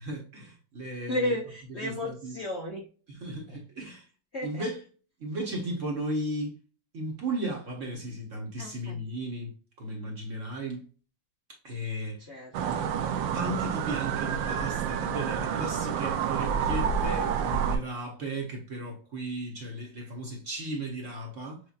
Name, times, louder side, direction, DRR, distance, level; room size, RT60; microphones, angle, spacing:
voice 1, 0.1-1.3 1.8-2.3 3.1-4.1 4.4-4.8 5.2-6.5 6.9-10.8 11.6-12.3 13.3-21.6, right 1 dB, 45° right, 1.3 m, -35 dB
voice 2, 1.1-2.9 3.5-3.6 4.3-4.7 8.6-9.0 12.2-12.9, left 1 dB, 50° left, 0.9 m, -33 dB
sound 1, 12.5-17.8, right 7 dB, 80° right, 1.3 m, -29 dB
6.6 x 2.6 x 2.4 m
omnidirectional pair, 2.1 m